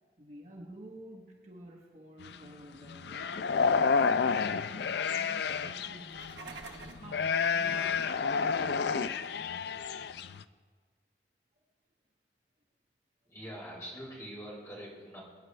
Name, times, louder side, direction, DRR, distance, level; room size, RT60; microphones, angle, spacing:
voice 1, 0.2-3.5 4.2-6.4 6.9-9.2, right 1 dB, 40° right, -2 dB, 1.5 m, -51 dB
sound 1, 2.2-2.3 2.9-6.4 7.0-10.4, left 5 dB, 65° left, 0.4 m, -30 dB
sound 2, 6.0-7.1, right 3 dB, 85° right, 1.2 m, -46 dB
voice 2, 13.2-15.2, equal, 15° left, -5 dB, 4.5 m, -44 dB
22.5 x 9.9 x 3.3 m, 1.5 s
head